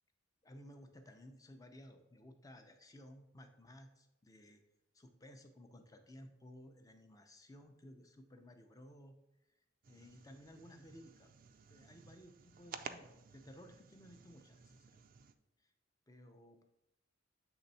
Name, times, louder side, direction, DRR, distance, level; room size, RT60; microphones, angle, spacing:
voice 1, 0.4-4.6 4.9-9.1 9.5-9.6 9.9-11.3 11.7-15.0 15.6-15.7 16.1-16.6, equal, 20° left, 6 dB, 0.6 m, -57 dB
sound 1, 9.8-15.3, right 6 dB, 45° right, 0.4 m, -54 dB
7.9 x 3.4 x 4.1 m, 0.90 s
head